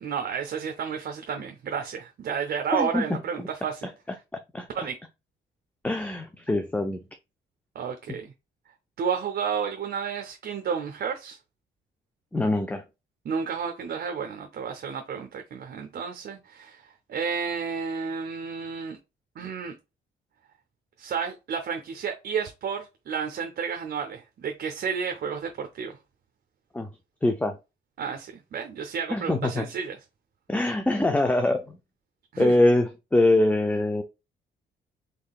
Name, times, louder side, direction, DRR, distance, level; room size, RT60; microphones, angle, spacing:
voice 1, 0.0-3.9 4.7-5.0 7.7-8.3 9.0-11.4 13.2-19.0 19.4-19.7 21.0-26.0 28.0-30.0 32.3-32.5, right 6 dB, 55° right, 0.6 m, -31 dB
voice 2, 2.7-3.0 3.4-3.5 4.5-4.9 5.8-7.0 8.1-8.2 12.3-12.8 26.7-26.9 27.2-27.6 29.1-29.7 30.5-31.8 32.4-34.0, left 2 dB, 10° left, 0.4 m, -23 dB
3.7 x 3.6 x 2.4 m
cardioid pair, 90°, 20 cm